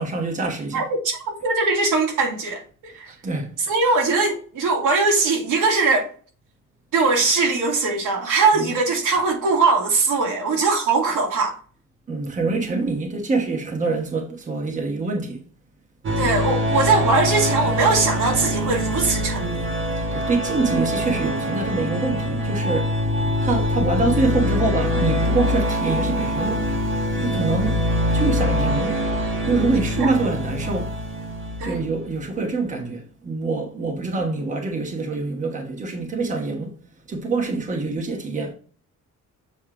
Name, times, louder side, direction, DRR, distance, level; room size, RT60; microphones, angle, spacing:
voice 1, 0.0-0.8 3.2-3.5 8.5-8.7 12.1-15.4 20.1-23.0 23.4-26.7 27.2-27.8 28.1-29.0 29.5-30.9 31.6-36.8 37.1-38.5, right 3 dB, 25° right, 1.2 m, -25 dB
voice 2, 0.7-2.9 3.7-6.1 6.9-11.5 16.2-19.7 30.0-30.1 31.6-31.8, right 3 dB, 85° right, 2.5 m, -21 dB
sound 1, 16.0-32.0, equal, 40° right, 1.4 m, -24 dB
7.6 x 3.2 x 4.8 m
cardioid pair, 175°, 31 cm